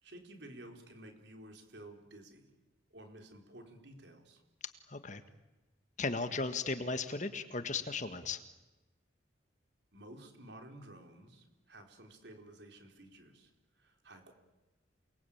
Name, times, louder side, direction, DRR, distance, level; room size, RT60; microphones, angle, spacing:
voice 1, 0.0-2.5 2.9-4.4 9.9-14.3, right 1 dB, 60° right, 4 dB, 4.5 m, -53 dB
voice 2, 4.9-5.2 6.0-8.4, left 3 dB, 40° left, 10 dB, 1.6 m, -36 dB
29.0 x 22.0 x 8.8 m, 1.1 s
head